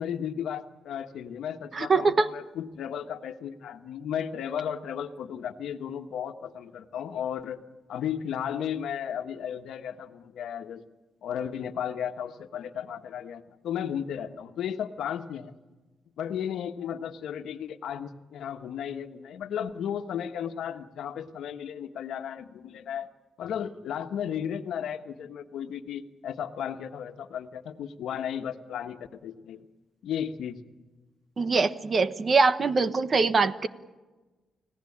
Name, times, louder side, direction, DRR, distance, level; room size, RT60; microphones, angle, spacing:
voice 1, 0.0-7.6 7.9-10.8 11.2-15.5 16.2-23.1 23.4-29.6 30.0-30.6, left 9 dB, 80° left, 7 dB, 1.3 m, -34 dB
voice 2, 1.7-2.3 31.4-33.7, right 4 dB, 35° right, 13 dB, 1.0 m, -23 dB
30.0 x 17.0 x 8.7 m, 1.2 s
cardioid pair, 110°, 0 cm